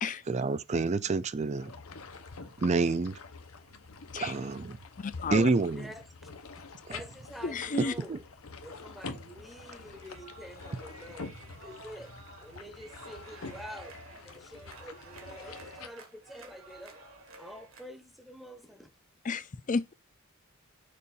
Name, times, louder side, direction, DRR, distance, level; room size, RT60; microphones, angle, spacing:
voice 1, 0.3-1.7 2.6-3.2 4.2-4.8 5.3-5.9 7.8-8.2, right 3 dB, 30° right, 0.4 m, -28 dB
sound 1, 1.5-15.9, left 4 dB, 80° left, 0.9 m, -46 dB
voice 2, 5.0-5.5 7.4-7.9 19.2-19.9, left 4 dB, 35° left, 0.5 m, -32 dB
voice 3, 5.7-6.3 6.9-8.2 8.6-12.1 12.4-17.0 17.4-18.9, equal, ahead, 0.8 m, -47 dB
sound 2, 9.8-17.9, right 2 dB, 70° right, 1.8 m, -52 dB
6.6 x 2.6 x 5.5 m
head